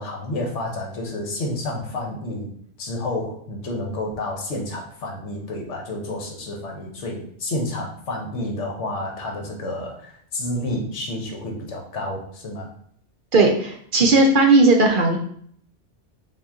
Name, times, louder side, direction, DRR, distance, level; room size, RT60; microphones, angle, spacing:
voice 1, 0.0-2.5 2.8-12.7, left 1 dB, 85° left, 0 dB, 1.2 m, -30 dB
voice 2, 13.3-15.2, right 2 dB, 55° right, 1 dB, 0.6 m, -16 dB
3.8 x 2.4 x 3.5 m, 0.63 s
omnidirectional pair, 1.2 m